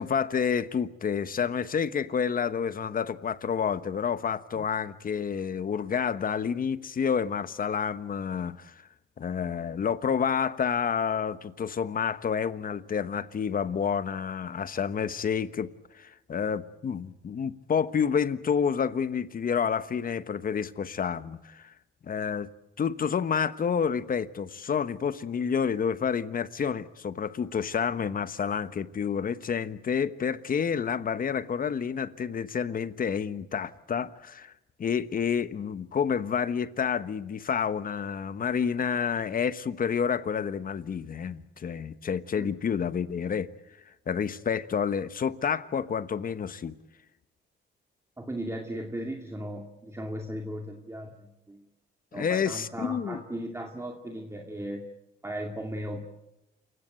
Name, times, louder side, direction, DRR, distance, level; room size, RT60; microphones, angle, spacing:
voice 1, 0.0-8.7 9.2-15.7 15.9-21.7 22.0-22.5 22.8-34.5 34.8-43.5 44.1-46.7 52.1-53.2, left 7 dB, 45° left, 1.2 m, -29 dB
voice 2, 48.2-51.6 52.1-54.8 55.2-56.1, right 1 dB, 15° right, 2.3 m, -37 dB
28.0 x 16.0 x 9.1 m
cardioid pair, 90°, 20 cm